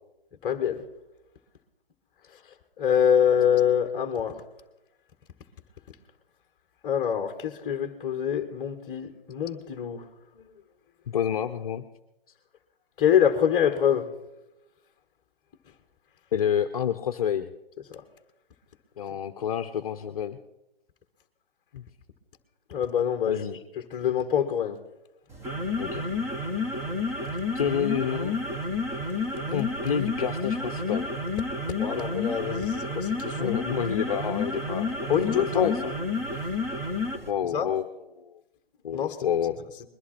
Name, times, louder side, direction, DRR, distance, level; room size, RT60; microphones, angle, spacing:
voice 1, 0.4-0.8 2.8-4.4 6.8-10.1 10.3-10.5 13.0-14.1 17.9-18.0 22.7-23.4 23.9-24.8 31.8-33.6 35.1-35.7 37.5-37.7 38.9-39.3, left 8 dB, 15° left, 1.3 m, -25 dB
voice 2, 11.1-11.8 16.3-17.5 19.0-20.4 21.7-21.8 23.3-23.6 25.8-26.1 27.5-28.4 29.5-31.1 33.4-35.7 37.2-37.8 38.1-38.3 38.8-39.6, left 8 dB, 35° left, 0.8 m, -29 dB
sound 1, 25.3-37.3, left 3 dB, 10° right, 1.1 m, -30 dB
21.5 x 11.0 x 4.3 m
figure-of-eight pair, 145°, 30 cm